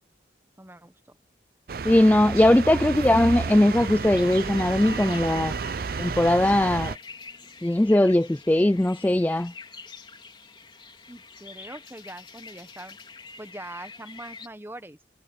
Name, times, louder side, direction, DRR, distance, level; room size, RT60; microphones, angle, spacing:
voice 1, 0.6-1.0 11.1-13.0 13.4-15.0, right 1 dB, 10° right, 1.2 m, -42 dB
sound 1, 1.7-7.0, right 5 dB, 55° right, 0.5 m, -31 dB
voice 2, 1.8-5.5 6.0-6.9 7.6-9.5, left 1 dB, 10° left, 0.3 m, -20 dB
sound 2, 3.3-14.5, left 4 dB, 25° left, 4.0 m, -46 dB
head